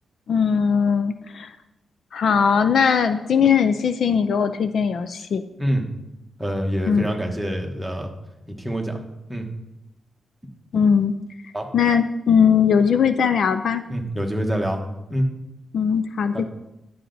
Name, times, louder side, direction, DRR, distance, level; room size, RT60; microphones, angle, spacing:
voice 1, 0.3-1.5 2.1-5.4 6.9-7.1 10.7-11.1 11.7-13.8 15.7-16.5, left 6 dB, 55° left, 11 dB, 0.4 m, -19 dB
voice 2, 6.4-8.1 8.5-9.0 9.3-9.5 11.5-11.7 13.9-14.8 15.1-15.3 16.3-16.5, equal, ahead, 1 dB, 1.2 m, -25 dB
11.0 x 7.8 x 3.9 m, 0.91 s
wide cardioid pair, 155°, 0 cm